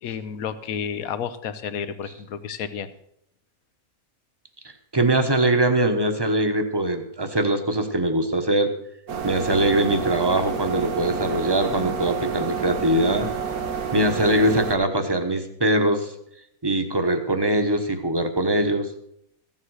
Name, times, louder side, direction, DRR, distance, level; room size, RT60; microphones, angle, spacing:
voice 1, 0.0-2.9, left 7 dB, 75° left, 13 dB, 1.3 m, -31 dB
voice 2, 4.9-8.7 9.2-13.3 13.9-16.1 16.6-18.9, right 1 dB, 20° right, 6 dB, 1.1 m, -22 dB
sound 1, 9.1-14.7, right 6 dB, 90° right, 1.8 m, -29 dB
15.0 x 7.6 x 6.4 m, 0.73 s
omnidirectional pair, 1.5 m